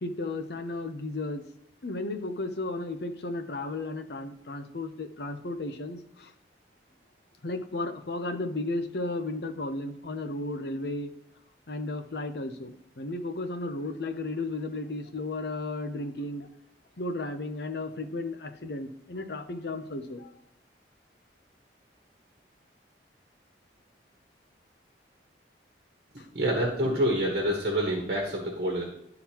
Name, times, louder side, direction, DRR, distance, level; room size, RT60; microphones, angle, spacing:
voice 1, 0.0-1.4 1.8-6.3 7.4-11.1 11.7-16.5 17.0-20.3 26.2-26.3, left 2 dB, 65° left, 7 dB, 0.7 m, -34 dB
voice 2, 26.3-28.8, right 1 dB, 55° right, -1 dB, 1.3 m, -27 dB
11.5 x 3.9 x 2.9 m, 0.75 s
head